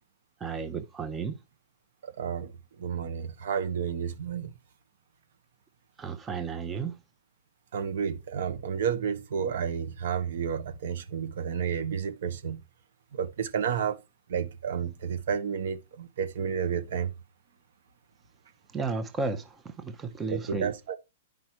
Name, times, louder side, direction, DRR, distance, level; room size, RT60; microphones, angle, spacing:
voice 1, 0.4-1.4 6.0-7.0 18.7-20.7, right 4 dB, 15° right, 0.8 m, -33 dB
voice 2, 2.2-2.5 2.8-4.5 7.7-12.6 13.1-14.0 14.3-17.1 20.3-20.9, right 7 dB, 70° right, 1.2 m, -31 dB
9.6 x 5.2 x 4.5 m
hypercardioid pair, 150°, 0 cm